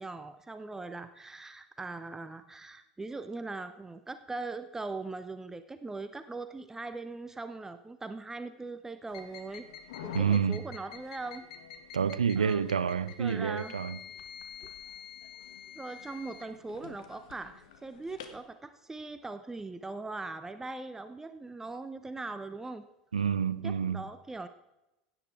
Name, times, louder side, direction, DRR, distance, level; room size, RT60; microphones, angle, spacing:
voice 1, 0.0-9.7 10.0-11.5 12.4-12.7 13.2-13.7 14.6-14.7 15.7-22.9 23.6-24.5, right 3 dB, 10° right, 0.7 m, -40 dB
sound 1, 9.1-18.4, left 8 dB, 65° left, 1.4 m, -47 dB
voice 2, 10.1-10.6 11.9-14.0 23.1-24.0, right 7 dB, 80° right, 0.6 m, -28 dB
16.5 x 9.1 x 4.7 m
figure-of-eight pair, 75°, 4 cm